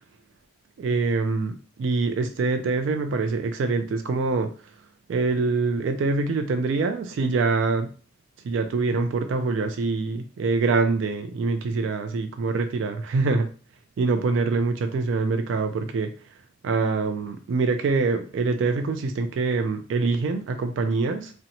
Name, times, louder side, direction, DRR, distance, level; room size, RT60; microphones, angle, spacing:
voice 1, 0.8-4.5 5.1-7.9 8.4-13.5 14.0-16.1 16.6-21.3, right 3 dB, 70° right, 7 dB, 0.3 m, -24 dB
2.6 x 2.1 x 2.8 m, 0.38 s
head